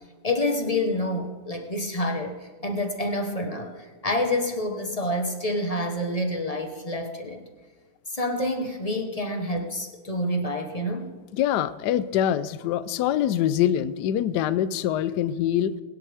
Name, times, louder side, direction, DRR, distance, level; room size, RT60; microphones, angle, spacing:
voice 1, 0.2-7.4 8.1-11.1, left 1 dB, 25° left, 4 dB, 0.9 m, -28 dB
voice 2, 11.3-15.7, left 10 dB, 70° left, 15 dB, 1.1 m, -24 dB
21.0 x 10.5 x 3.5 m, 1.4 s
omnidirectional pair, 2.1 m